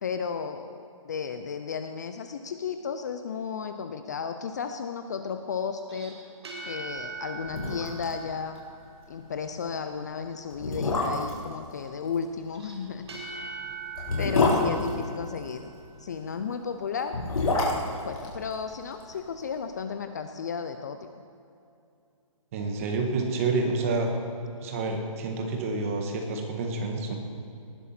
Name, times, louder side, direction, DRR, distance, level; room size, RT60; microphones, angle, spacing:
voice 1, 0.0-6.2 6.7-8.6 9.1-13.1 14.2-15.7 16.0-17.2 18.0-21.1, left 6 dB, 30° left, 8 dB, 0.5 m, -34 dB
sound 1, 5.8-9.3 12.5-16.1, right 4 dB, 50° right, 1.7 m, -42 dB
sound 2, 7.1-7.2 7.4-8.1 8.4-8.5 8.9-9.1 9.8-9.9 10.5-11.4 13.0-15.6 16.9-19.1 19.4-19.5, left 3 dB, 80° left, 4.0 m, -27 dB
voice 2, 22.5-24.1 24.6-27.2, right 3 dB, 25° right, 3 dB, 1.5 m, -28 dB
18.5 x 11.5 x 4.3 m, 2.6 s
hypercardioid pair, 170°, 17 cm